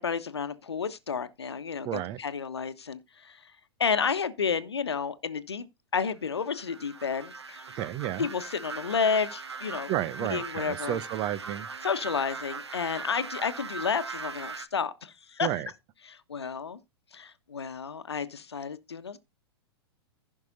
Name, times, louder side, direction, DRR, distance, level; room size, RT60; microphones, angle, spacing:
voice 1, 0.0-3.5 3.8-5.7 5.9-7.7 8.2-9.9 10.2-11.0 11.8-15.6 16.1-16.8 17.1-19.2, left 6 dB, 75° left, 1.1 m, -31 dB
voice 2, 1.8-2.2 7.7-8.3 9.9-11.7 15.4-15.7, right 12 dB, 30° right, 0.8 m, -31 dB
sound 1, 6.3-14.7, right 4 dB, 80° right, 1.1 m, -40 dB
15.0 x 5.9 x 4.0 m
figure-of-eight pair, 105°, 14 cm